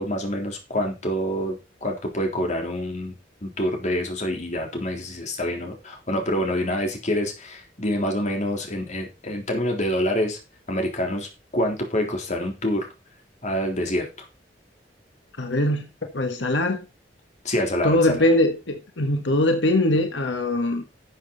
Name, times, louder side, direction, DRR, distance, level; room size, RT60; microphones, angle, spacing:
voice 1, 0.0-3.2 3.4-10.4 10.7-11.3 11.5-12.9 13.4-14.0 17.4-18.3, equal, 40° left, 3.6 m, -26 dB
voice 2, 15.4-16.8 17.8-20.8, left 1 dB, 85° left, 1.6 m, -22 dB
12.0 x 7.5 x 4.1 m
head